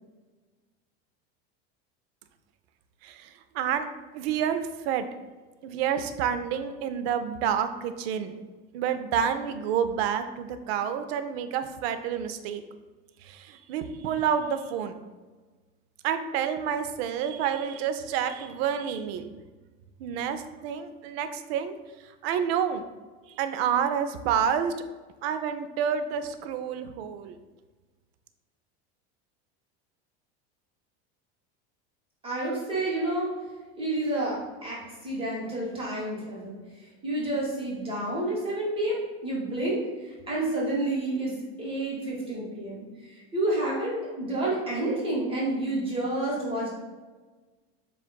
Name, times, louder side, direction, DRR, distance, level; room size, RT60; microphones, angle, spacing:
voice 1, 3.0-3.9 4.1-5.1 5.6-8.4 8.7-12.6 13.2-15.0 16.0-19.3 20.0-21.7 22.2-22.8 23.4-24.7 25.2-27.4, right 8 dB, 75° right, 10 dB, 0.5 m, -29 dB
voice 2, 32.2-33.3 33.8-36.6 37.0-41.3 41.6-46.7, right 1 dB, 20° right, -5 dB, 1.2 m, -29 dB
7.2 x 2.4 x 2.3 m, 1.3 s
supercardioid pair, 120°, 31 cm